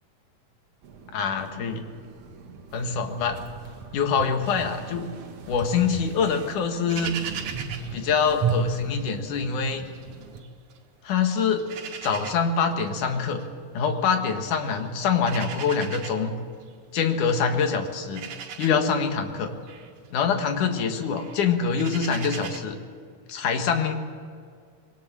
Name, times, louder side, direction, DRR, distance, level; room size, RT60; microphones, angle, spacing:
sound 1, 0.8-10.4, right 4 dB, 55° right, 2.1 m, -35 dB
voice 1, 1.1-1.9 2.7-3.4 3.9-5.1 5.5-7.4 7.9-9.9 11.0-11.7 12.0-13.4 13.7-16.4 16.9-18.3 18.6-19.5 20.1-22.8 23.3-23.9, left 6 dB, 65° left, 5 dB, 3.1 m, -25 dB
sound 2, 6.9-9.2 9.5-10.8 11.1-22.6, right 7 dB, 85° right, 3.6 m, -41 dB
22.0 x 18.5 x 7.5 m, 2.1 s
omnidirectional pair, 3.9 m